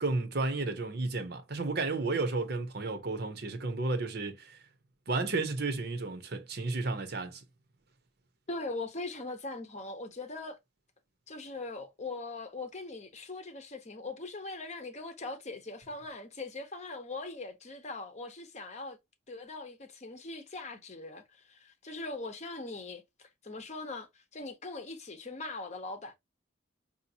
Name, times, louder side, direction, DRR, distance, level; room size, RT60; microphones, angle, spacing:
voice 1, 0.0-4.6 5.1-7.4, right 3 dB, 55° right, 0.8 m, -32 dB
voice 2, 8.5-10.6 11.3-19.0 19.3-26.1, left 3 dB, 35° left, 0.8 m, -41 dB
5.0 x 2.8 x 2.8 m
head